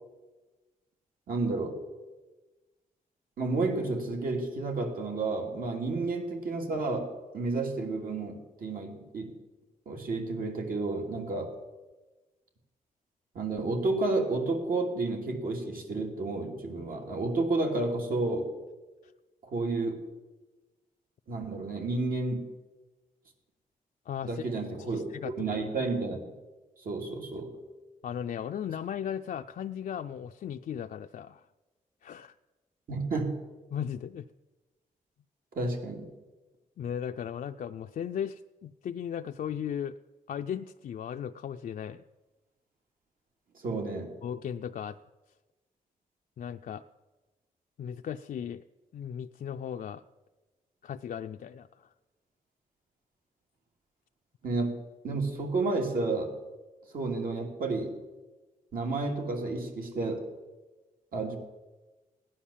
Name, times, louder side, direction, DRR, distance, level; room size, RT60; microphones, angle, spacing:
voice 1, 1.3-1.8 3.4-9.3 9.9-11.5 13.3-18.5 19.4-20.0 21.3-22.5 24.2-25.0 25.4-26.2 26.8-27.5 32.9-33.4 35.5-36.1 43.5-44.1 54.4-54.8 55.0-56.3 56.9-57.9 58.7-60.3 61.1-61.4, right 3 dB, 75° right, 2 dB, 2.9 m, -31 dB
voice 2, 24.1-24.5 24.9-25.5 28.0-31.4 32.0-32.3 33.7-34.3 36.8-40.0 40.3-42.0 44.2-45.0 46.4-46.8 47.8-48.6 48.9-50.0 50.8-51.9, left 8 dB, 65° left, 6 dB, 0.5 m, -36 dB
16.0 x 10.0 x 7.3 m, 1.2 s
wide cardioid pair, 115°, 15 cm